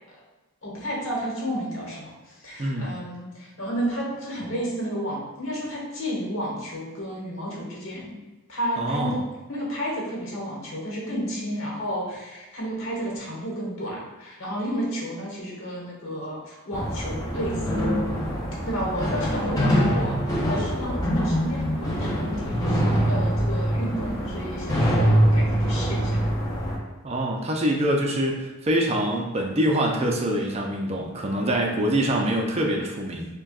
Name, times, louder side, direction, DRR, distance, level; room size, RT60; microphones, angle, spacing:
voice 1, 0.6-8.2 8.5-17.8 18.6-26.2 32.2-32.4, equal, 65° left, -4 dB, 1.2 m, -32 dB
voice 2, 2.6-2.9 8.8-9.2 27.0-33.3, right 1 dB, 30° right, 0 dB, 0.4 m, -25 dB
sound 1, 16.7-26.8, equal, 15° left, 0.6 m, -24 dB
6.1 x 2.2 x 2.4 m, 1.1 s
head